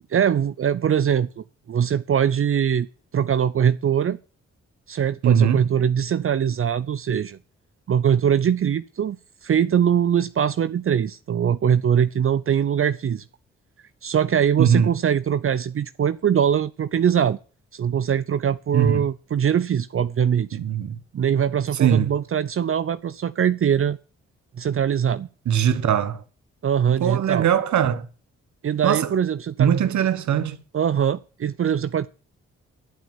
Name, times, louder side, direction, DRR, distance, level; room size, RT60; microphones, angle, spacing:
voice 1, 0.1-2.9 3.1-4.2 4.9-7.4 7.9-9.2 9.4-13.2 14.0-17.4 17.7-20.6 21.1-24.0 24.6-25.3 26.6-27.5 28.6-29.7 30.7-32.1, right 8 dB, 45° right, 0.6 m, -22 dB
voice 2, 5.2-5.7 14.6-14.9 18.7-19.1 20.5-21.0 21.8-22.1 25.5-26.2 27.0-28.0 28.8-29.1 29.6-30.6, right 9 dB, 75° right, 1.2 m, -20 dB
11.0 x 6.0 x 7.1 m
supercardioid pair, 50°, 29 cm